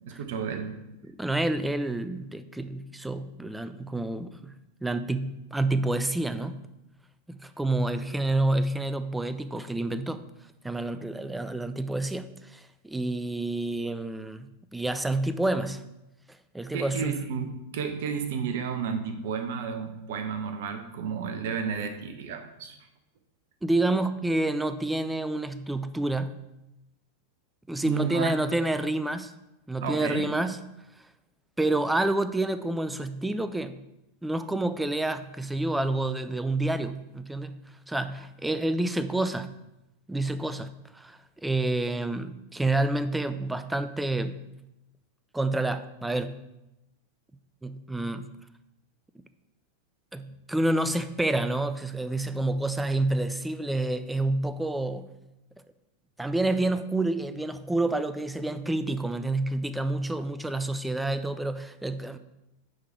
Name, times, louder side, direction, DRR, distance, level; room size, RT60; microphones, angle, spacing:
voice 1, 0.0-0.8 16.7-22.8 27.8-28.3 29.8-30.3, right 6 dB, 55° right, 7 dB, 0.8 m, -32 dB
voice 2, 1.0-4.5 4.8-6.6 7.3-10.2 10.6-15.8 16.5-17.2 23.6-26.3 27.7-29.3 29.7-30.6 31.6-33.8 34.2-39.5 40.1-44.5 45.3-46.4 47.6-48.3 50.1-55.1 56.2-62.2, right 2 dB, 5° right, 12 dB, 0.4 m, -28 dB
9.5 x 3.9 x 4.4 m, 0.93 s
figure-of-eight pair, 90°, 0 cm